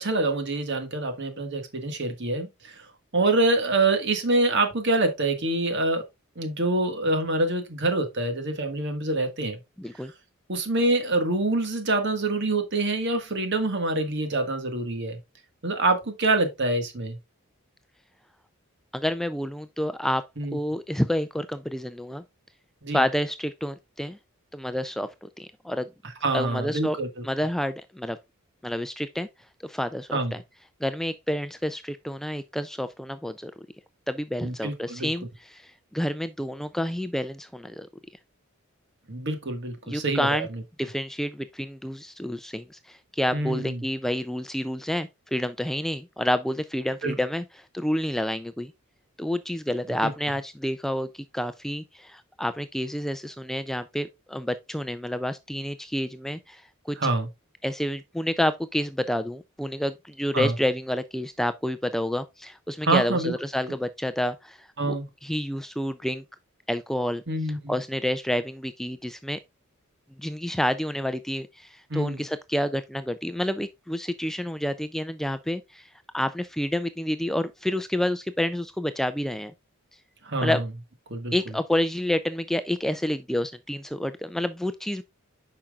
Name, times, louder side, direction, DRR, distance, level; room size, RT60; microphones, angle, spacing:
voice 1, 0.0-2.9 3.1-6.0 6.3-9.6 10.0-10.1 10.5-15.2 15.6-17.2 20.4-20.6 22.8-23.0 26.2-27.1 30.1-30.3 34.4-35.1 39.1-40.6 43.3-43.8 47.0-47.1 50.0-50.1 57.0-57.3 60.3-60.5 62.8-63.3 64.8-65.1 67.3-67.8 71.9-72.2 80.2-80.6 81.1-81.3, right 2 dB, 55° right, 1.6 m, -26 dB
voice 2, 9.8-10.1 18.9-20.2 20.5-22.2 22.9-24.2 24.5-25.9 26.3-27.0 27.2-28.2 28.6-29.3 29.6-30.4 30.8-33.5 34.1-37.9 39.9-40.5 40.8-48.7 49.2-57.1 57.6-65.0 65.2-66.2 66.7-67.2 67.7-69.4 70.2-79.5 80.4-80.6 81.3-85.0, left 1 dB, ahead, 0.3 m, -29 dB
8.7 x 5.8 x 2.3 m
head